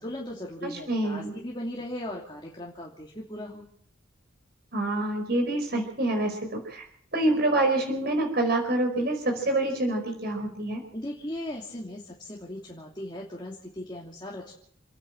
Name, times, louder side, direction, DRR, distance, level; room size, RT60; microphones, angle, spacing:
voice 1, 0.0-3.6 10.9-14.5, left 1 dB, 20° left, -2 dB, 2.9 m, -38 dB
voice 2, 0.6-1.3 4.7-6.8 7.1-10.8, right 1 dB, 50° right, 3 dB, 4.8 m, -26 dB
29.5 x 10.0 x 8.9 m, 0.65 s
head